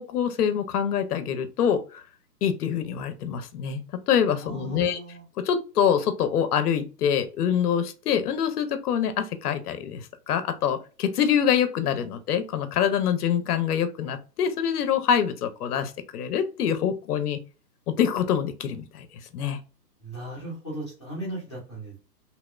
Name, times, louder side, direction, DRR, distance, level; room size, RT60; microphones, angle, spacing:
voice 1, 0.0-2.0 2.4-5.0 5.4-10.0 10.3-17.4 17.9-19.1 19.3-19.6, left 8 dB, 65° left, 0.5 m, -25 dB
voice 2, 4.4-5.2 20.0-22.0, right 1 dB, 20° left, 0.5 m, -37 dB
2.7 x 2.0 x 2.2 m
hypercardioid pair, 165°, 49 cm